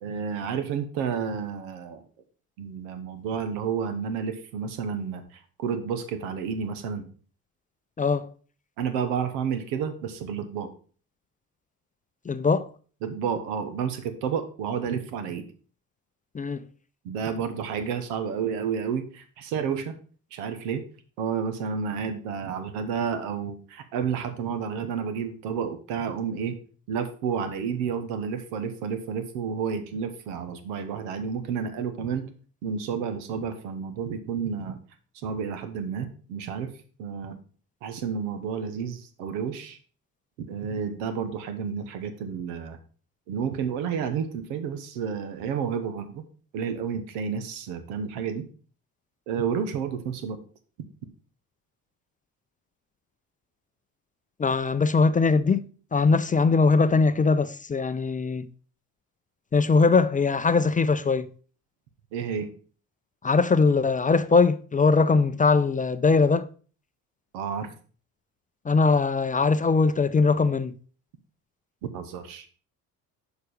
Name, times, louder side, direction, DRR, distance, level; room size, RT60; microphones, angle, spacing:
voice 1, 0.0-2.0 2.6-7.1 8.8-10.7 13.0-15.4 17.0-20.0 20.3-20.8 21.2-26.6 26.9-32.3 32.6-34.8 35.2-36.7 37.0-37.3 37.8-39.8 40.5-42.8 43.3-46.2 46.5-48.5 49.3-50.4 62.1-62.5 67.3-67.7 71.9-72.5, right 6 dB, 85° right, 1.0 m, -30 dB
voice 2, 8.0-8.3 12.2-12.7 16.3-16.6 54.4-58.5 59.5-61.3 63.2-66.5 68.6-70.8, left 4 dB, 20° left, 0.4 m, -21 dB
6.7 x 4.7 x 5.0 m
supercardioid pair, 65°, 39 cm